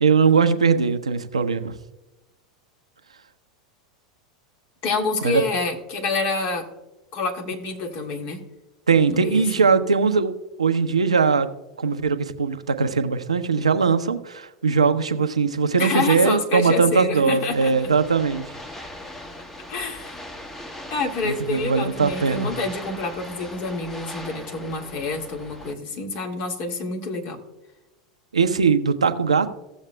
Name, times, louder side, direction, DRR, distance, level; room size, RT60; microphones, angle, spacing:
voice 1, 0.0-1.7 5.2-5.4 8.9-11.5 11.8-18.4 21.2-22.5 28.3-29.5, right 5 dB, 85° right, 9 dB, 0.6 m, -20 dB
voice 2, 4.8-6.7 7.1-8.4 9.1-9.6 15.8-17.9 19.7-20.2 20.9-27.4, left 3 dB, 50° left, 2 dB, 1.8 m, -27 dB
sound 1, 17.5-25.7, left 1 dB, 10° left, 1.1 m, -39 dB
16.5 x 7.2 x 2.2 m, 1.0 s
figure-of-eight pair, 85°, 3 cm